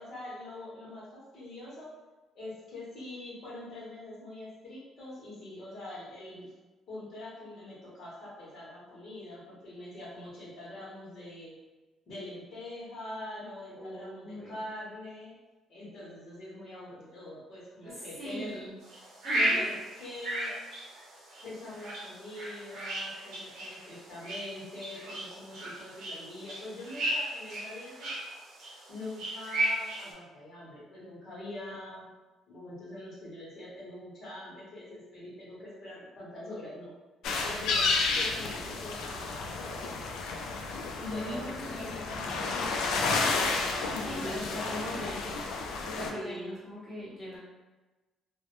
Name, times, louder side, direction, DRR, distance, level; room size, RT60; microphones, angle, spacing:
voice 1, 0.0-1.9 2.3-6.5 6.9-11.6 12.1-15.4 15.7-18.6 19.3-20.6 21.4-28.1 28.9-32.1 32.5-36.9 37.4-39.9 40.9-43.0 43.9-44.8 46.1-46.6, left 1 dB, 45° left, -6 dB, 0.8 m, -43 dB
voice 2, 13.7-14.6 17.8-18.7 19.2-19.7 41.0-42.5 44.0-45.3 45.8-47.4, equal, 5° right, -10 dB, 0.7 m, -40 dB
sound 1, 18.8-30.1, right 1 dB, 65° right, 0.7 m, -35 dB
sound 2, 37.2-46.1, left 4 dB, 75° left, 0.3 m, -31 dB
2.1 x 2.1 x 2.8 m, 1.2 s
cardioid pair, 160°, 0 cm